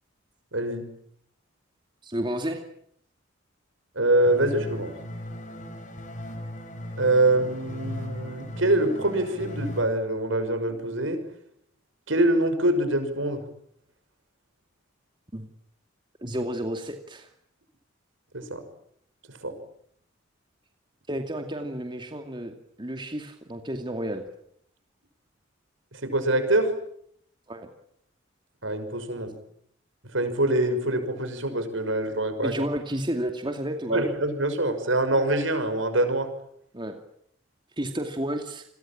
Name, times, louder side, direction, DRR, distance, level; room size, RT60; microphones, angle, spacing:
voice 1, 0.5-0.8 4.0-4.9 7.0-11.2 12.1-13.4 18.3-18.6 19.4-19.6 25.9-26.7 28.6-29.3 30.1-32.5 33.9-36.3, right 1 dB, 70° right, 9 dB, 5.9 m, -24 dB
voice 2, 2.0-2.6 15.3-15.5 16.2-17.3 21.1-24.3 27.5-27.7 32.4-34.0 36.7-37.0 37.8-38.7, right 1 dB, 25° right, 5 dB, 2.4 m, -31 dB
sound 1, 4.3-9.8, left 1 dB, 40° left, 4.9 m, -37 dB
29.5 x 22.0 x 8.8 m, 0.69 s
head